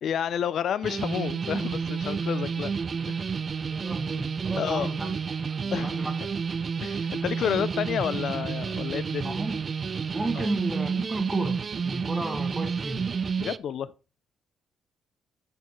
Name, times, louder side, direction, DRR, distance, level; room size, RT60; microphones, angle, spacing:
voice 1, 0.0-2.7 3.1-3.3 4.6-4.9 5.7-6.0 6.8-9.4 10.3-10.5 13.4-13.9, left 9 dB, 65° left, 0.3 m, -30 dB
sound 1, 0.8-13.6, right 5 dB, 40° right, 0.3 m, -30 dB
voice 2, 3.7-5.1 5.4-6.1 7.4-7.6 9.2-9.6 10.1-13.0, right 2 dB, 15° right, 1.5 m, -33 dB
13.0 x 4.3 x 3.0 m
cardioid pair, 90°, 0 cm